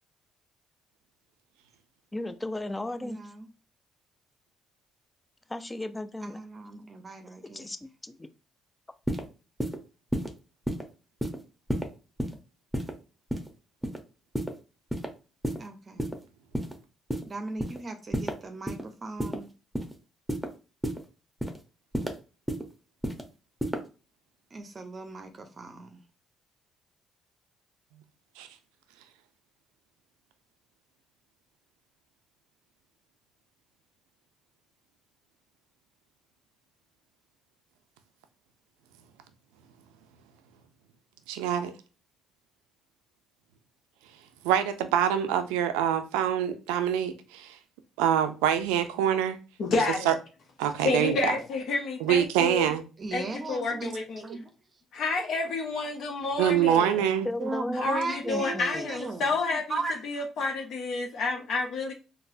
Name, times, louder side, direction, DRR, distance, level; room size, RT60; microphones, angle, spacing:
voice 1, 2.1-3.2 5.5-6.4 7.5-8.3 51.0-51.5 57.2-58.0 58.2-58.9, left 2 dB, 15° left, 0.4 m, -35 dB
voice 2, 3.0-3.5 6.2-7.7 15.6-16.2 17.3-19.5 24.5-26.0 53.0-54.5 57.4-59.2 59.7-60.0, right 3 dB, 35° right, 0.6 m, -37 dB
sound 1, 9.1-9.2 9.6-9.8 10.1-10.3 10.7-10.8 11.2-11.4 11.7-11.9 12.2-12.4 12.7-12.9 13.3-13.5 13.8-14.0 14.4-14.5 14.9-15.1 15.4-15.6 16.0-16.2 16.5-16.7 17.1-17.2 17.6-17.8 18.1-18.3 18.7-18.8 19.2-19.4 19.7-19.9 20.3-20.5 20.8-21.0 21.4-21.6 21.9-22.1 22.5-22.6 23.0-23.2 23.6-23.8, equal, 5° right, 0.8 m, -30 dB
voice 3, 41.3-41.7 44.4-47.6 48.0-49.4 50.1-50.2 50.6-51.4 52.0-52.8 56.4-57.3, right 9 dB, 90° right, 0.4 m, -25 dB
voice 4, 49.6-50.1 50.8-52.7 53.1-54.2 54.9-57.1 57.7-59.8 60.0-61.9, left 3 dB, 65° left, 0.8 m, -30 dB
3.9 x 2.1 x 2.6 m
supercardioid pair, 65°, 0 cm